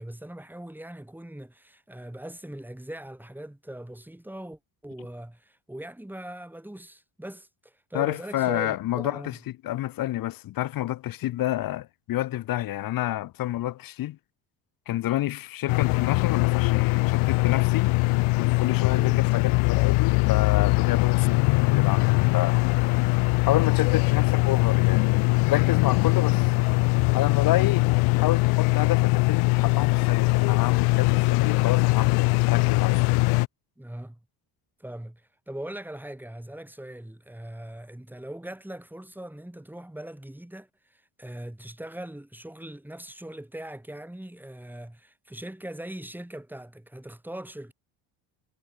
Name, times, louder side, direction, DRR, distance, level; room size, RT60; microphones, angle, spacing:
voice 1, 0.0-9.4 18.9-19.2 33.8-34.2 34.8-47.7, right 1 dB, 5° right, 3.6 m, -40 dB
voice 2, 7.9-9.3 9.6-14.2 14.9-17.9 18.4-22.6 23.4-25.2 25.5-26.4 27.1-33.0, left 14 dB, 45° left, 0.6 m, -29 dB
sound 1, 15.7-33.5, left 27 dB, 80° left, 0.7 m, -21 dB
cardioid pair, 100°, 49 cm